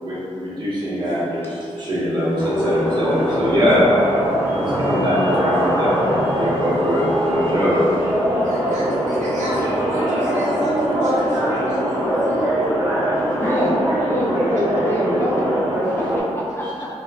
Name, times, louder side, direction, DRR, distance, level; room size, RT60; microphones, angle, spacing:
voice 1, 0.0-3.9 4.5-7.9, equal, 40° right, -9 dB, 1.3 m, -22 dB
sound 1, 2.4-16.2, equal, 25° right, 1.0 m, -22 dB
voice 2, 8.4-12.5, equal, 80° right, -7 dB, 0.8 m, -28 dB
voice 3, 13.3-16.9, left 1 dB, 20° left, -5 dB, 0.6 m, -25 dB
4.0 x 2.6 x 2.4 m, 2.6 s
cardioid pair, 75°, 12 cm